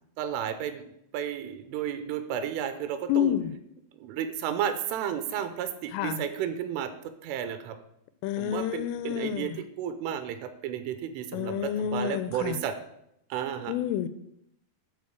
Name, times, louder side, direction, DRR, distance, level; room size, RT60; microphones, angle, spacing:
voice 1, 0.2-0.8 1.1-3.3 4.0-6.9 7.2-7.8 8.4-9.5 9.8-12.7 13.3-13.7, right 9 dB, 85° right, 10 dB, 3.0 m, -32 dB
voice 2, 3.1-3.5 5.9-6.2 8.2-9.6 11.3-12.6 13.7-14.1, left 10 dB, 85° left, 13 dB, 3.0 m, -29 dB
11.5 x 4.4 x 8.1 m, 0.78 s
omnidirectional pair, 5.9 m